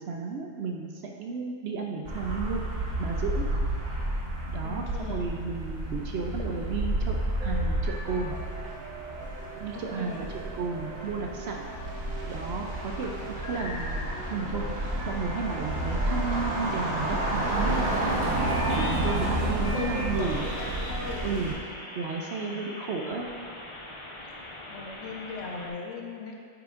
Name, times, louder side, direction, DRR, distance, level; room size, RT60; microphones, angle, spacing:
voice 1, 0.0-2.6 3.0-3.4 4.5-8.3 9.6-11.7 12.3-18.2 18.8-20.4 21.2-21.5 21.9-23.3, right 4 dB, 65° right, 1 dB, 0.7 m, -33 dB
sound 1, 2.0-21.5, right 1 dB, 80° right, 1.5 m, -31 dB
voice 2, 4.6-5.2 9.7-10.3 19.3-21.3 22.4-22.7 24.7-26.4, left 4 dB, 70° left, 0 dB, 1.1 m, -39 dB
sound 2, 7.4-21.6, right 2 dB, 5° right, 0.8 m, -43 dB
sound 3, 13.3-14.2 15.1-25.7, left 1 dB, 35° left, 0.5 m, -40 dB
8.6 x 5.9 x 2.5 m, 2.2 s
omnidirectional pair, 1.4 m